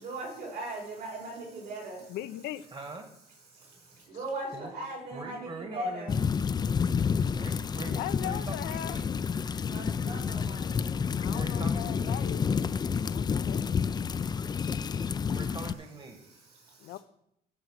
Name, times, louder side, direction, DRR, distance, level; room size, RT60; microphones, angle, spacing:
voice 1, 0.0-2.2 3.5-6.1 7.3-7.4 9.6-11.0 16.5-17.0, right 1 dB, 70° right, -1 dB, 4.8 m, -39 dB
voice 2, 2.1-2.7 8.0-9.0 11.1-12.4 13.0-14.0 16.8-17.0, left 14 dB, 85° left, 12 dB, 0.7 m, -39 dB
voice 3, 2.7-3.1 4.5-4.7 5.1-6.3 6.6-6.8 7.3-9.1 11.2-12.3 15.3-16.4, right 3 dB, 30° right, 4 dB, 1.6 m, -43 dB
sound 1, 6.1-15.7, left 6 dB, 25° left, 0.4 m, -29 dB
13.0 x 4.7 x 6.5 m, 0.78 s
cardioid pair, 110°, 17 cm